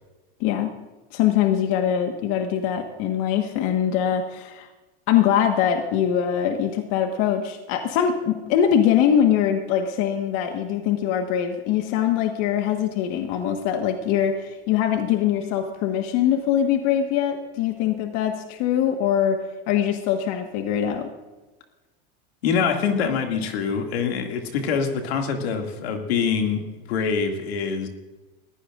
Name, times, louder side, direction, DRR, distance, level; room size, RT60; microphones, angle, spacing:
voice 1, 0.4-0.7 1.1-4.7 5.1-19.4 19.7-21.1, left 9 dB, 60° left, 5 dB, 1.5 m, -22 dB
voice 2, 22.4-27.9, left 6 dB, 85° left, 3 dB, 2.4 m, -25 dB
21.0 x 15.0 x 2.5 m, 1.2 s
supercardioid pair, 120°, 30 cm